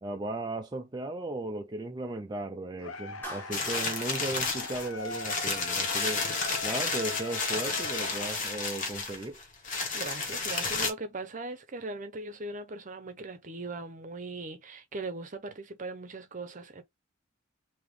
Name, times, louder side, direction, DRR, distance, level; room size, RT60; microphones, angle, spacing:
voice 1, 0.0-6.2 6.6-9.4, right 2 dB, 20° right, 0.4 m, -36 dB
sound 1, 2.8-8.9, left 4 dB, 75° left, 0.7 m, -41 dB
Clapping, 3.2-3.9, right 1 dB, 10° left, 1.3 m, -41 dB
sound 2, 3.5-10.9, left 4 dB, 40° left, 1.1 m, -32 dB
voice 2, 9.9-16.8, right 2 dB, 40° right, 0.8 m, -39 dB
3.5 x 2.8 x 3.3 m
head